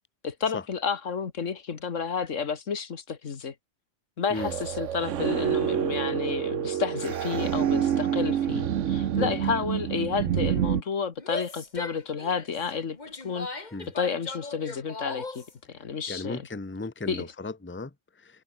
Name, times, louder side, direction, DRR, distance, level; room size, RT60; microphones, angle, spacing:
voice 1, 0.2-3.5 4.2-13.7 14.0-16.4 17.1-17.3, left 6 dB, 85° left, 1.9 m, -31 dB
sound 1, 4.4-10.8, right 9 dB, 80° right, 1.2 m, -27 dB
Female speech woman speaking / Yell, 11.2-15.5, left 3 dB, 35° left, 2.1 m, -38 dB
voice 2, 16.1-18.4, left 3 dB, 10° left, 1.0 m, -36 dB
omnidirectional pair, 1.3 m